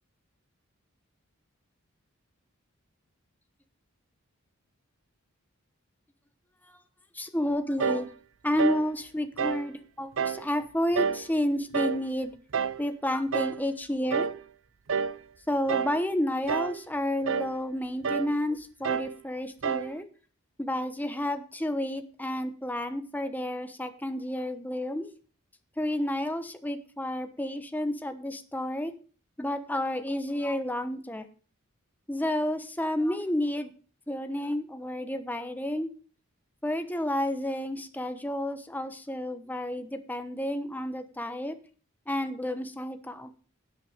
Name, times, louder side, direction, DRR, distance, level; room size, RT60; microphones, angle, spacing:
voice 1, 7.1-8.1 8.4-12.3 12.8-14.3 15.5-20.1 20.6-25.1 25.8-28.9 29.4-31.3 32.1-33.7 34.1-35.9 36.6-41.6 42.1-43.3, left 1 dB, 10° left, 8 dB, 1.0 m, -31 dB
sound 1, 7.8-8.1 8.6-8.9 9.4-9.7 10.2-10.4 11.0-11.3 11.7-12.0 12.5-12.8 13.3-13.6 14.1-14.4 14.9-15.2 15.7-16.0 16.5-16.8 17.3-17.5 18.0-18.3 18.8-19.1 19.6-19.9, right 6 dB, 65° right, 0.5 m, -29 dB
12.0 x 8.1 x 5.1 m, 0.40 s
head